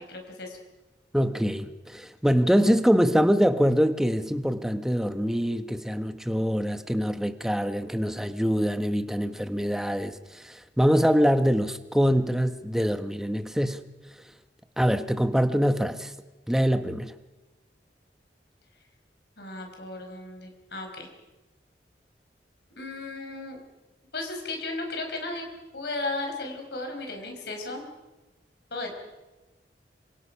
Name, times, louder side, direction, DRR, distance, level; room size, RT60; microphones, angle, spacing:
voice 1, 0.1-0.6 19.4-21.1 22.7-23.6 24.1-25.4 25.7-27.9 28.7-28.9, left 2 dB, 65° left, 3 dB, 5.2 m, -35 dB
voice 2, 1.1-10.2 10.4-13.9 14.8-16.1 16.5-17.1, equal, 5° right, 9 dB, 1.1 m, -24 dB
26.5 x 26.0 x 5.7 m, 1.1 s
head